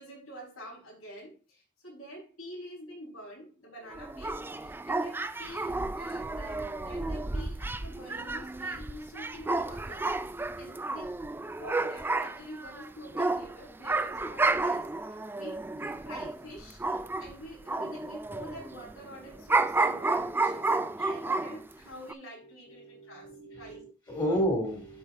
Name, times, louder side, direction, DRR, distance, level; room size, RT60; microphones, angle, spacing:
voice 1, 0.0-10.1 10.6-11.1 11.4-14.9 15.3-16.8 17.2-23.8 24.2-24.4, equal, 75° left, 4.9 m, -46 dB
sound 1, 3.9-17.3 17.7-21.7 22.1-22.2, right 3 dB, 10° right, 0.3 m, -31 dB
voice 2, 22.7-25.0, equal, 20° left, 2.7 m, -32 dB
12.5 x 5.0 x 2.6 m
head